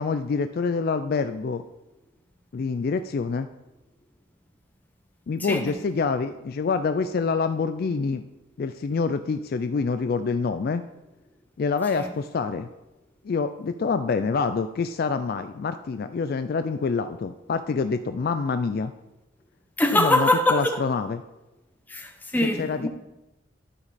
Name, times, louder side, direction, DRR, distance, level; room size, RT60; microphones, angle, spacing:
voice 1, 0.0-1.6 2.5-3.5 5.3-8.2 8.6-10.8 11.6-12.7 13.2-18.9 19.9-21.2 22.4-22.9, left 4 dB, 45° left, 0.3 m, -26 dB
voice 2, 5.4-5.8 11.9-12.1 19.8-20.7 21.9-22.9, left 1 dB, 10° left, 0.8 m, -23 dB
13.0 x 5.0 x 4.2 m
head